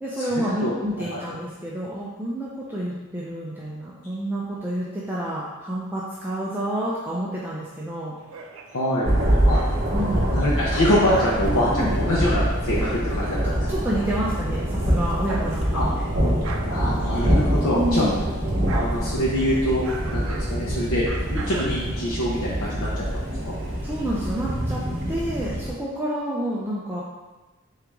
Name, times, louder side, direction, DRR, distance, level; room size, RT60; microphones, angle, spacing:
voice 1, 0.0-8.1 9.9-10.3 11.7-11.9 12.8-12.9 13.7-16.1 17.7-18.1 23.8-24.8 25.1-27.0, right 1 dB, 10° right, -6 dB, 0.4 m, -29 dB
voice 2, 0.6-1.2 8.7-9.1 9.5-9.6 10.3-13.5 15.7-15.8 16.7-18.1 18.7-19.8 20.1-23.1 23.5-23.6, left 1 dB, 85° left, -6 dB, 0.7 m, -24 dB
sound 1, 8.2-10.0 10.4-18.0 18.3-22.5, right 4 dB, 80° right, 0.4 m, -39 dB
Thunder, 9.0-25.7, equal, 45° right, 0.9 m, -25 dB
3.7 x 3.1 x 3.4 m, 1.2 s
head